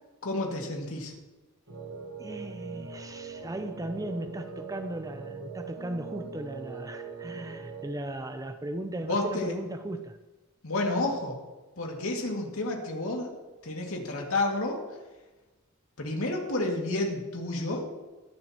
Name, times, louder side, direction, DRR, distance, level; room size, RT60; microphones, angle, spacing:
voice 1, 0.2-1.1 9.1-9.5 10.6-11.4 11.8-13.3 13.6-14.8 16.0-17.9, left 2 dB, 80° left, 2.3 m, -30 dB
sound 1, 1.7-7.9, right 4 dB, 75° right, 1.5 m, -41 dB
voice 2, 2.2-10.2, right 1 dB, 15° right, 0.6 m, -37 dB
22.0 x 7.3 x 3.0 m
head